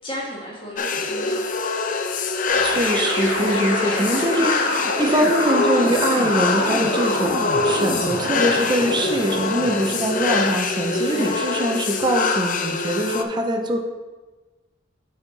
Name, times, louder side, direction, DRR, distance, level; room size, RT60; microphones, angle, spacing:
voice 1, 0.0-1.4 3.4-4.2 11.0-11.4, equal, 25° left, -4 dB, 1.7 m, -34 dB
sound 1, 0.8-13.2, left 4 dB, 45° left, 0.5 m, -24 dB
sound 2, 2.5-10.6, left 1 dB, 75° left, 2.0 m, -27 dB
voice 2, 2.6-13.8, right 1 dB, 20° right, 2 dB, 0.7 m, -23 dB
7.1 x 4.4 x 5.2 m, 1.2 s
head